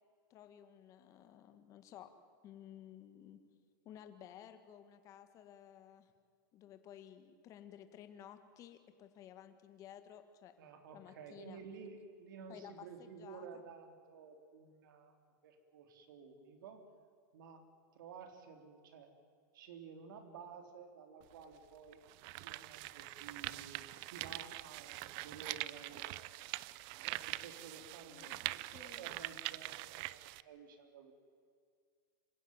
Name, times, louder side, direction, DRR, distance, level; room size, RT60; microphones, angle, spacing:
voice 1, 0.3-2.1 2.4-3.4 3.8-6.1 6.5-10.5 10.9-11.6 12.5-13.6 28.1-28.4 28.7-29.1, left 10 dB, 30° left, 8 dB, 2.0 m, -55 dB
voice 2, 10.6-15.2 15.4-16.9 17.3-17.7 17.9-19.1 19.5-22.1 22.4-26.5 27.0-31.1, right 6 dB, 75° right, 6 dB, 3.7 m, -53 dB
sound 1, 21.2-21.3 21.9-30.4, right 19 dB, 40° right, 0.6 m, -44 dB
26.5 x 16.0 x 9.4 m, 2.2 s
supercardioid pair, 155°, 11 cm